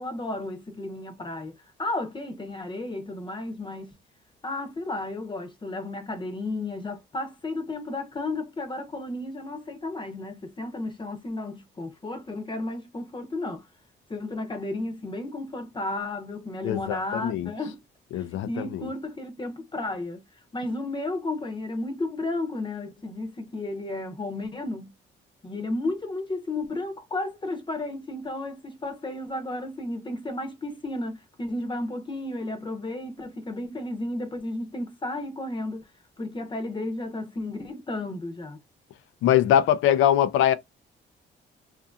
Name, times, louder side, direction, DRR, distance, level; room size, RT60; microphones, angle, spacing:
voice 1, 0.0-1.5 1.8-3.9 4.4-13.7 14.1-17.8 18.1-20.2 20.5-24.9 25.4-35.9 36.2-38.6, left 2 dB, 25° left, 0.7 m, -33 dB
voice 2, 16.6-17.5 18.1-18.9 39.2-40.5, left 11 dB, 85° left, 0.4 m, -22 dB
2.6 x 2.6 x 2.3 m
cardioid pair, 90°, 20 cm